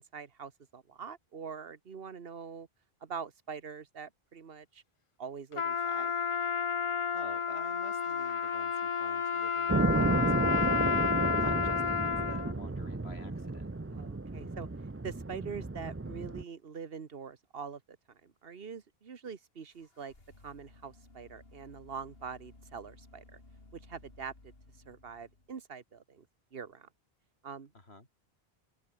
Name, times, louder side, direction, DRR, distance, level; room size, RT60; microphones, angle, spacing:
voice 1, 0.0-2.7 3.0-4.8 5.2-6.1 13.9-14.7 15.0-20.1 20.4-23.4 23.7-24.5 24.8-26.2 26.5-26.9 27.4-27.7, right 6 dB, 65° right, 1.6 m, -44 dB
Trumpet, 5.5-12.5, left 6 dB, 40° left, 0.5 m, -31 dB
voice 2, 7.1-10.9 11.2-13.7 27.7-28.1, left 2 dB, 85° left, 4.6 m, -51 dB
sound 1, 9.7-16.4, right 2 dB, 15° right, 0.6 m, -32 dB
sound 2, 19.7-25.6, left 2 dB, 70° left, 3.8 m, -57 dB
open air
omnidirectional pair, 1.0 m